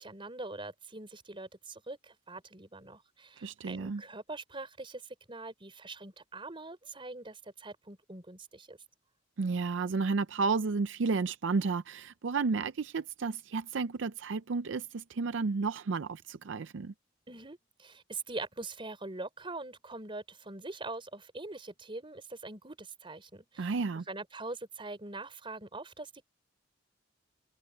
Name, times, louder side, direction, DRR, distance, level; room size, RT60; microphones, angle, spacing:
voice 1, 0.0-8.8 17.3-23.7 24.1-26.2, right 2 dB, 25° right, 4.2 m, -43 dB
voice 2, 3.4-4.0 9.4-16.9 23.6-24.0, right 4 dB, 70° right, 0.5 m, -32 dB
head